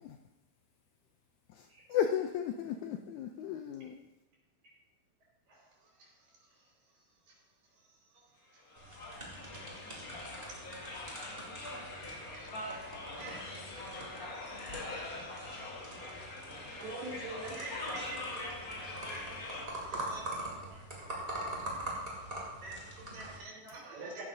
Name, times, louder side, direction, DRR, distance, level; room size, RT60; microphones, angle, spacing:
voice 1, 1.6-4.0, left 9 dB, 85° left, 5 dB, 1.7 m, -34 dB
sound 1, 8.7-19.6, left 2 dB, 45° left, 1.1 m, -43 dB
sound 2, 8.8-23.4, right 1 dB, 20° right, 2.2 m, -44 dB
voice 2, 10.4-10.7 11.1-11.2 11.4-11.8 12.3-12.6 13.1-15.7 16.8-18.5 18.8-20.6 22.6-24.2, right 3 dB, 85° right, -5 dB, 6.4 m, -48 dB
voice 3, 15.7-17.6 19.3-21.6, right 2 dB, 45° right, -1 dB, 2.3 m, -59 dB
15.0 x 11.5 x 2.7 m, 1.0 s
omnidirectional pair, 3.9 m